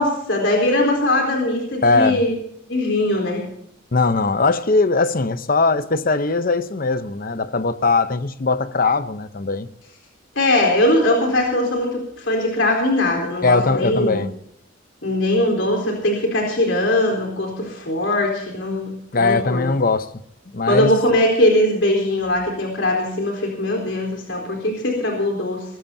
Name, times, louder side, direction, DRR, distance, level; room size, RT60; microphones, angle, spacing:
voice 1, 0.0-2.4 2.7-3.4 10.4-14.2 15.0-19.7 20.7-25.6, left 1 dB, 60° left, 4.2 m, -20 dB
voice 2, 1.8-2.2 3.9-9.7 13.4-14.3 19.1-20.1 20.5-20.9, left 3 dB, 45° left, 0.8 m, -20 dB
21.5 x 17.0 x 2.8 m
head